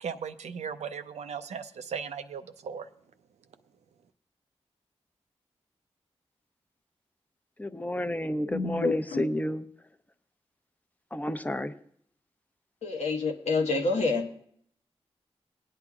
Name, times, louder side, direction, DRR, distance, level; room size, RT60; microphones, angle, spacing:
voice 1, 0.0-2.9, right 6 dB, 85° right, 9 dB, 0.5 m, -37 dB
voice 2, 7.6-9.7 11.1-11.7, left 1 dB, 15° left, 10 dB, 0.7 m, -31 dB
voice 3, 8.5-9.3 12.8-14.3, left 3 dB, 80° left, 2 dB, 1.1 m, -28 dB
23.0 x 8.9 x 2.4 m, 0.64 s
cardioid pair, 45°, 11 cm